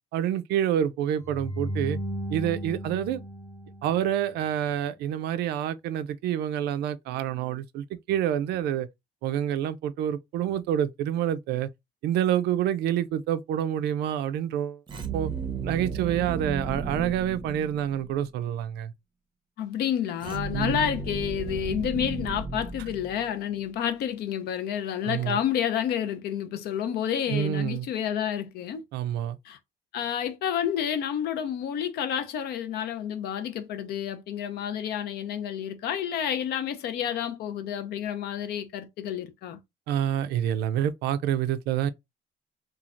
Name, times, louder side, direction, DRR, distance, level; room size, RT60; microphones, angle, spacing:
voice 1, 0.1-2.0 2.3-3.2 3.8-8.9 9.2-11.7 12.0-14.8 15.1-15.3 15.6-18.9 20.5-20.8 25.0-25.4 27.3-27.9 28.9-29.4 39.9-41.9, right 10 dB, 80° right, 0.4 m, -27 dB
sound 1, 1.2-4.4, equal, 15° left, 0.9 m, -35 dB
sound 2, 14.9-18.2 20.2-23.5, right 4 dB, 30° right, 0.6 m, -34 dB
voice 2, 19.6-28.8 29.4-29.6 29.9-39.6, left 9 dB, 70° left, 0.6 m, -30 dB
3.1 x 2.3 x 2.5 m
cardioid pair, 110°, 17 cm